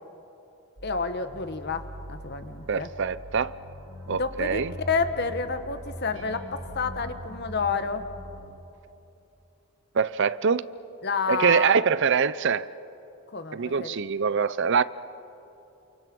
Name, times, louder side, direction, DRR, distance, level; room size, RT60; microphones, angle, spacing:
voice 1, 0.8-2.9 4.1-4.6 4.9-8.1 11.0-11.7 13.3-14.0, left 5 dB, 50° left, 1.3 m, -29 dB
sound 1, 0.8-8.5, equal, 80° right, 4.4 m, -42 dB
voice 2, 2.7-3.5 4.1-4.7 9.9-10.7 11.3-12.7 13.5-14.8, right 6 dB, 55° right, 0.5 m, -24 dB
29.0 x 28.0 x 6.2 m
head